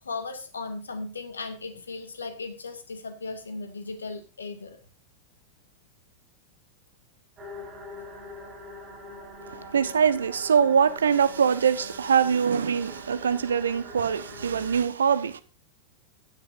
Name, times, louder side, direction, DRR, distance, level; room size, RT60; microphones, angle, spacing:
voice 1, 0.0-4.8 14.5-14.6, left 3 dB, 75° left, 2.1 m, -37 dB
sound 1, 7.4-14.8, equal, 25° right, 6.9 m, -44 dB
voice 2, 9.5-15.4, right 7 dB, 70° right, 1.1 m, -23 dB
15.5 x 10.0 x 2.6 m
figure-of-eight pair, 90°, 0 cm